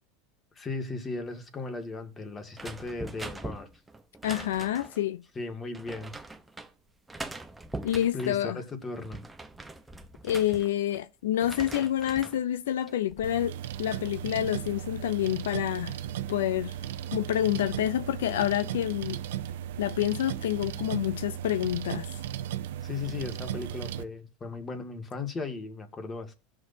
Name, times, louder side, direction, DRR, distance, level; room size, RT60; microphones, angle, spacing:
voice 1, 0.6-3.7 5.4-6.1 8.1-9.2 22.8-26.3, left 3 dB, 25° left, 2.0 m, -36 dB
sound 1, 2.5-5.0 5.7-6.7 7.1-8.3 8.8-11.0 11.3-12.4 12.9-13.3, right 2 dB, 10° right, 0.9 m, -42 dB
voice 2, 4.2-5.2 7.8-8.6 10.2-13.5 13.8-16.0 16.3-16.8 17.1-19.2 19.8-22.1, left 12 dB, 90° left, 0.5 m, -28 dB
sound 2, 13.2-24.0, right 11 dB, 80° right, 0.6 m, -36 dB
16.5 x 6.4 x 2.8 m
supercardioid pair, 110°, 0 cm